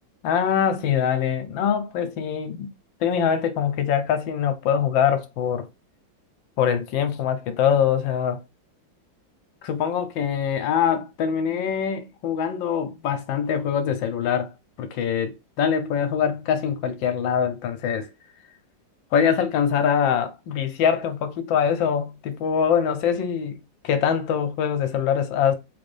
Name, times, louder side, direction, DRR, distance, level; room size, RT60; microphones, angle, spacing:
voice 1, 0.2-2.7 3.0-5.7 6.6-8.4 9.6-14.5 14.8-18.1 19.1-25.5, left 8 dB, 75° left, 1.3 m, -23 dB
3.8 x 2.5 x 3.2 m
omnidirectional pair, 2.2 m